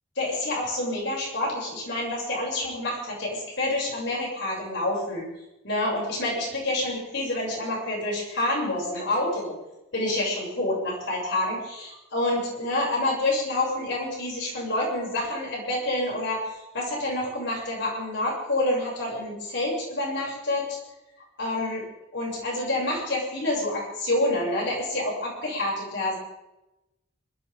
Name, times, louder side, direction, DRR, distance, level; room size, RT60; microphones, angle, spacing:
voice 1, 0.2-5.3 5.6-9.5 9.9-20.8 21.4-21.9 22.1-26.2, left 1 dB, 60° left, -3 dB, 7.1 m, -28 dB
26.0 x 13.5 x 3.8 m, 0.94 s
head